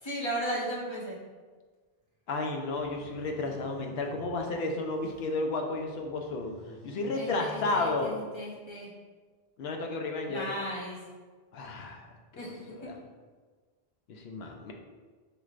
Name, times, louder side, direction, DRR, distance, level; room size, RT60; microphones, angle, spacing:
voice 1, 0.0-1.2 7.1-8.9 10.3-11.0 12.4-12.6, equal, 30° left, -5 dB, 0.8 m, -35 dB
voice 2, 2.3-6.5 6.8-8.1 9.6-10.5 11.5-12.1 12.8-12.9 14.1-14.7, left 2 dB, 75° left, 2 dB, 0.8 m, -32 dB
sound 1, 2.7-5.3 5.8-8.6, equal, 15° right, 1.1 m, -51 dB
4.9 x 3.1 x 2.4 m, 1.4 s
omnidirectional pair, 1.1 m